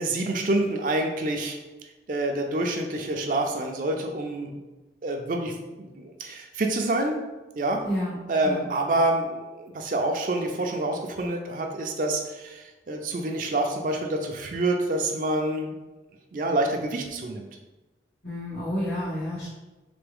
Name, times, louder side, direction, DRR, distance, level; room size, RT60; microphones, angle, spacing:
voice 1, 0.0-1.6 2.1-4.6 5.0-7.3 7.6-7.9 8.3-15.7 16.3-17.5, right 2 dB, 45° right, 2 dB, 0.4 m, -27 dB
voice 2, 7.8-8.2 8.4-8.6 18.2-19.5, left 1 dB, 85° left, -12 dB, 1.4 m, -30 dB
3.9 x 3.4 x 3.4 m, 1.1 s
head